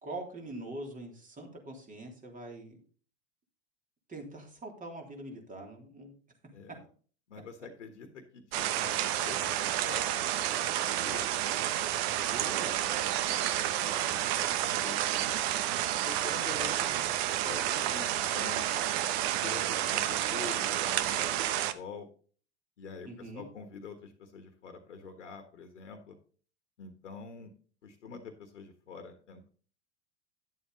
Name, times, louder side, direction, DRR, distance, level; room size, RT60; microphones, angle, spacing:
voice 1, 0.0-2.8 4.1-6.1 12.0-12.8 23.0-23.4, right 2 dB, 20° right, 2 dB, 3.3 m, -43 dB
voice 2, 7.3-11.2 13.0-13.3 13.6-15.4 16.0-18.7 19.4-22.1 22.8-26.2 26.8-27.5 27.8-29.5, left 5 dB, 85° left, 6 dB, 1.5 m, -46 dB
sound 1, 8.5-21.7, right 12 dB, 60° right, 1.0 m, -30 dB
10.5 x 7.7 x 4.0 m, 0.42 s
hypercardioid pair, 95°, 35 cm